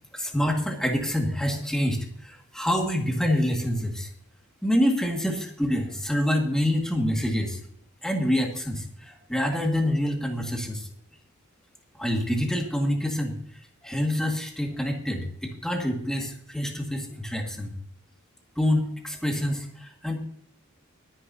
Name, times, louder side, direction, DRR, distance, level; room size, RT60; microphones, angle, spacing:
voice 1, 0.1-4.1 4.6-7.6 8.0-10.9 11.9-13.4 13.8-17.7 18.6-20.2, equal, 5° left, 1 dB, 2.1 m, -26 dB
23.0 x 10.0 x 2.8 m, 0.63 s
head